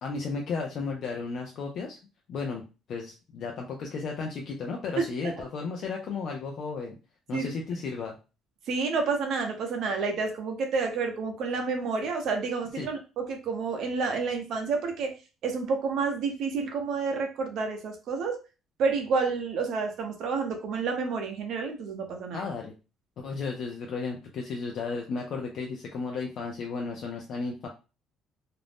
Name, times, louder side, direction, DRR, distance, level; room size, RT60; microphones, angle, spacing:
voice 1, 0.0-2.0 2.3-7.0 7.3-8.2 12.8-12.9 22.3-22.7 23.2-27.7, left 4 dB, 45° left, 1 dB, 0.4 m, -34 dB
voice 2, 8.7-15.2 15.4-18.4 18.8-22.5, right 4 dB, 50° right, 4 dB, 0.7 m, -29 dB
2.5 x 2.0 x 3.3 m, 0.31 s
cardioid pair, 165°, 0 cm